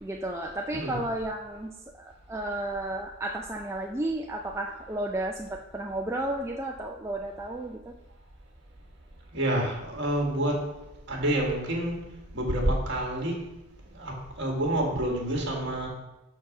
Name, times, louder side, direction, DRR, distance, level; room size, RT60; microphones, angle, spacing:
voice 1, 0.0-1.7 2.0-7.9, right 1 dB, 10° right, 0 dB, 0.3 m, -33 dB
voice 2, 9.3-10.6 11.1-13.5 13.9-15.9, right 1 dB, 50° right, 0 dB, 1.7 m, -28 dB
6.1 x 4.5 x 6.0 m, 1.0 s
head